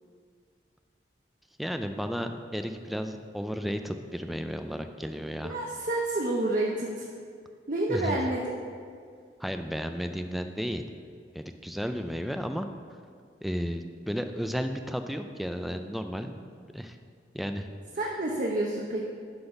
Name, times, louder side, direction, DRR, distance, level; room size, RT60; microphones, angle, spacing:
voice 1, 1.6-5.5 7.9-8.2 9.4-10.9 11.3-12.7 13.4-16.4 16.7-17.0 17.3-17.7, equal, ahead, 7 dB, 0.3 m, -33 dB
voice 2, 5.4-7.1 7.7-8.5 18.0-19.0, right 1 dB, 45° right, -2 dB, 0.8 m, -29 dB
10.5 x 4.1 x 5.8 m, 2.2 s
head